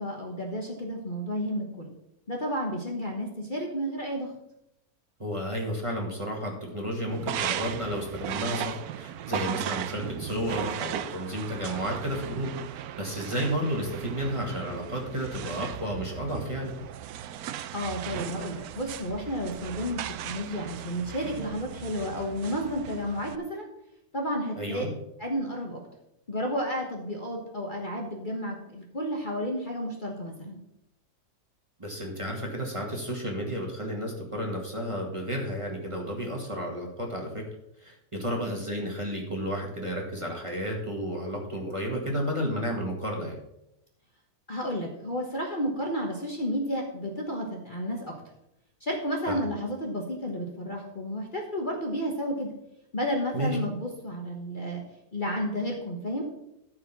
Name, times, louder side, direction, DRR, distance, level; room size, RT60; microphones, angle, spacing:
voice 1, 0.0-1.9 2.3-4.3 17.7-23.7 24.1-24.8 25.2-25.8 26.3-30.6 44.5-48.1 48.8-52.5 52.9-54.8 55.1-56.3, equal, 35° left, 0 dB, 1.4 m, -32 dB
voice 2, 5.2-16.7 24.6-24.9 31.8-37.4 37.8-43.4 49.3-49.5 53.3-53.6, equal, 20° right, -1 dB, 2.0 m, -32 dB
sound 1, 7.1-23.4, right 11 dB, 80° right, 1.1 m, -37 dB
13.5 x 4.9 x 6.0 m, 0.85 s
omnidirectional pair, 1.6 m